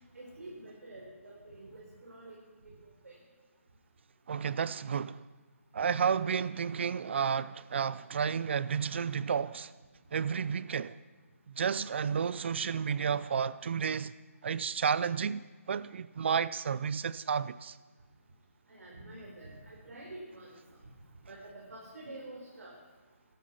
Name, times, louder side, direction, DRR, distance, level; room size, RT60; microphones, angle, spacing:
voice 1, 0.1-2.4 2.6-2.8 3.0-3.2 5.8-5.9 18.7-20.6 21.2-22.8, right 2 dB, 80° right, 4.2 m, -48 dB
voice 2, 4.3-5.2 5.7-9.7 10.1-11.0 11.5-14.1 14.4-17.8, right 7 dB, 50° right, 0.5 m, -31 dB
13.5 x 12.5 x 5.7 m
hypercardioid pair, 160°, 8 cm